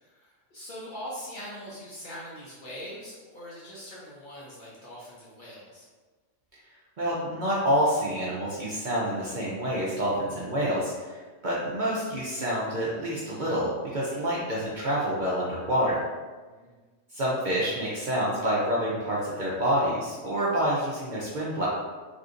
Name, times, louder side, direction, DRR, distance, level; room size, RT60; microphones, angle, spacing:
voice 1, 0.0-5.9 16.6-16.7, equal, 55° left, -6 dB, 0.6 m, -42 dB
voice 2, 7.0-16.0 17.1-21.7, equal, 55° right, -6 dB, 0.6 m, -27 dB
3.4 x 2.6 x 2.5 m, 1.4 s
omnidirectional pair, 1.3 m